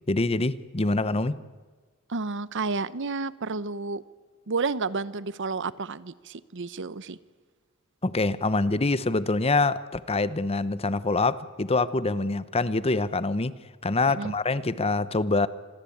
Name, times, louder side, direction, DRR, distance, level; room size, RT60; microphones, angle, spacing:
voice 1, 0.1-1.4 8.0-13.5 13.8-15.5, left 3 dB, 30° left, 16 dB, 0.9 m, -25 dB
voice 2, 2.1-4.0 4.5-7.2 14.1-14.3, right 4 dB, 60° right, 18 dB, 0.8 m, -31 dB
26.5 x 21.5 x 8.6 m, 1.4 s
head